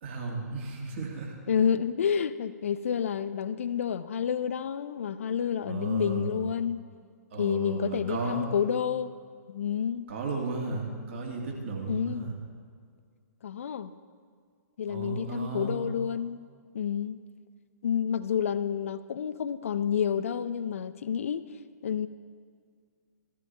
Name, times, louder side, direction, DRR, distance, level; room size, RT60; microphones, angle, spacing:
voice 1, 0.0-1.4 5.6-6.5 7.3-8.7 10.1-12.4 14.9-15.8, right 4 dB, 45° right, -1 dB, 2.2 m, -34 dB
voice 2, 1.5-6.8 7.4-9.1 9.5-10.0 11.9-12.3 13.4-13.9 14.8-16.4 16.7-17.2 17.8-22.1, left 8 dB, 50° left, 14 dB, 0.5 m, -29 dB
15.0 x 13.0 x 3.3 m, 2.1 s
figure-of-eight pair, 120°, 9 cm